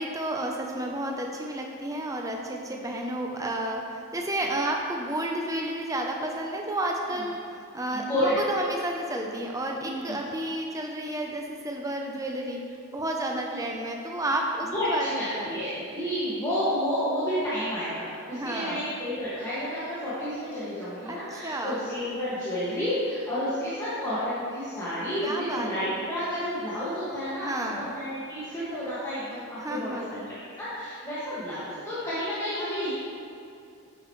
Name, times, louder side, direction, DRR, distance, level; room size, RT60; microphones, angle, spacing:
voice 1, 0.0-12.6 12.9-15.5 18.3-18.9 21.1-21.8 25.2-26.0 27.4-27.9 29.6-30.3, right 1 dB, 15° right, 1 dB, 0.6 m, -31 dB
voice 2, 7.9-8.4 9.8-10.2 14.6-27.5 27.9-30.0 30.3-32.9, equal, 15° left, -13 dB, 1.9 m, -30 dB
10.5 x 7.6 x 3.2 m, 2.5 s
head